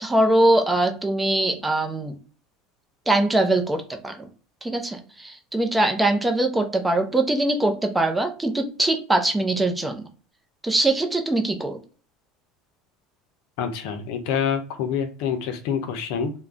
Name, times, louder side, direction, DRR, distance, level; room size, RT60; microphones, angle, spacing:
voice 1, 0.0-2.2 3.1-4.3 4.6-10.1 10.6-11.8, right 2 dB, 10° right, 5 dB, 0.5 m, -22 dB
voice 2, 13.6-16.3, left 7 dB, 70° left, 7 dB, 0.5 m, -26 dB
2.4 x 2.1 x 3.4 m, 0.39 s
supercardioid pair, 100°, 0 cm